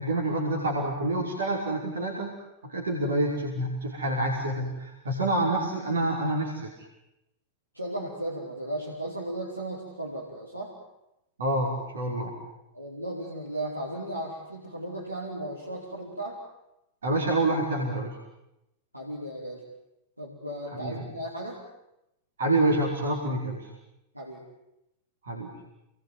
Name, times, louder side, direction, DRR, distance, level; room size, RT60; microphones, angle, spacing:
voice 1, 0.0-2.4 2.6-6.7 11.4-12.3 17.0-18.2 20.7-21.0 22.4-23.7 25.2-25.5, right 1 dB, 65° right, -1 dB, 5.4 m, -27 dB
voice 2, 7.7-10.7 12.7-16.4 18.9-19.6 20.2-21.6 24.1-24.4, right 1 dB, 85° right, -4 dB, 4.9 m, -35 dB
28.5 x 21.0 x 9.6 m, 0.87 s
figure-of-eight pair, 90°, 0 cm